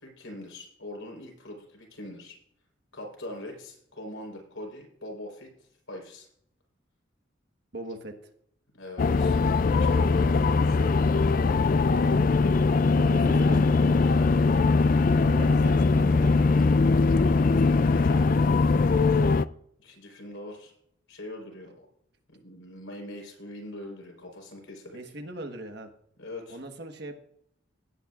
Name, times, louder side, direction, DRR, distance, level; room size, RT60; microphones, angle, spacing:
voice 1, 0.0-2.4 2.9-5.5 5.9-6.3 8.7-10.8 13.1-14.3 17.5-18.6 19.8-20.7 21.1-21.9 22.3-25.0 26.2-26.6, left 1 dB, 80° left, 1 dB, 4.3 m, -42 dB
voice 2, 7.7-8.2 12.9-13.6 15.2-16.5 24.9-25.9 26.5-27.2, right 1 dB, 55° right, 5 dB, 1.4 m, -39 dB
sound 1, 9.0-19.5, left 3 dB, 40° left, 0.3 m, -21 dB
17.5 x 8.9 x 2.5 m, 0.69 s
head